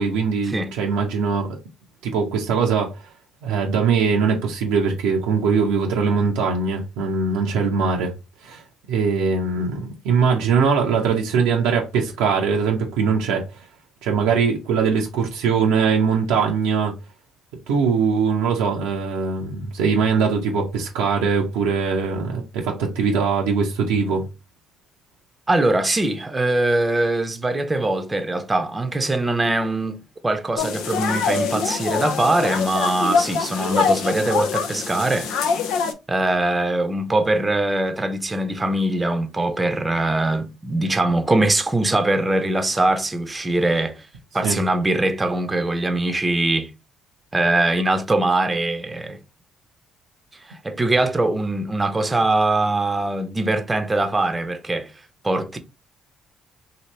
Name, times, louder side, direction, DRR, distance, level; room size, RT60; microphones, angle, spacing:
voice 1, 0.0-1.6 2.0-2.9 3.4-8.1 8.4-8.6 8.9-13.6 14.0-16.9 17.7-24.2 44.4-44.6, right 5 dB, 80° right, 0.6 m, -21 dB
voice 2, 25.5-30.0 30.2-35.3 36.1-44.1 44.3-46.7 47.3-49.2 50.4-54.9 55.2-55.6, right 2 dB, 20° right, 0.7 m, -22 dB
sound 1, 30.6-35.9, left 6 dB, 75° left, 0.5 m, -24 dB
2.8 x 2.8 x 3.0 m
hypercardioid pair, 55°, 0 cm